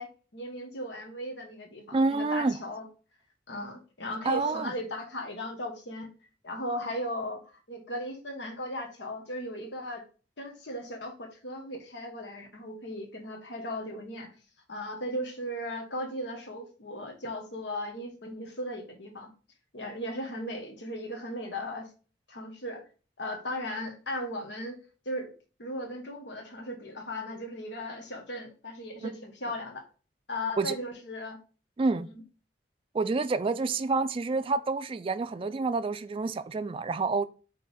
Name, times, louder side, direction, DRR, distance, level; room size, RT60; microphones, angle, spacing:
voice 1, 0.0-2.8 3.5-6.1 6.4-7.4 7.7-10.0 10.4-14.3 14.7-19.3 19.7-21.9 22.3-22.8 23.2-24.8 25.0-25.3 25.6-29.8 30.3-31.4, left 1 dB, 85° left, 1.4 m, -37 dB
voice 2, 1.9-2.6 4.2-4.7 29.0-29.1 30.6-30.8 31.8-32.1 32.9-37.2, right 3 dB, 30° right, 0.3 m, -28 dB
8.4 x 3.4 x 3.5 m
head